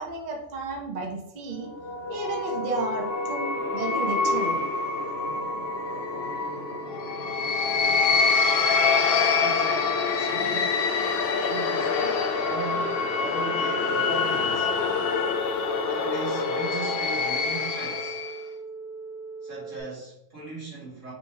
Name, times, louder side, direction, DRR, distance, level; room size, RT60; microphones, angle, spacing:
voice 1, 0.0-1.7 2.1-4.6, right 3 dB, 40° right, 0 dB, 0.7 m, -33 dB
sound 1, 1.6-18.4, left 4 dB, 60° left, 0.7 m, -26 dB
sound 2, 2.9-19.8, right 4 dB, 85° left, 1.8 m, -41 dB
voice 2, 9.4-10.8 11.4-14.7 15.8-18.2 19.4-21.1, right 3 dB, 75° right, -6 dB, 2.3 m, -38 dB
5.3 x 3.1 x 2.8 m, 0.79 s
omnidirectional pair, 1.3 m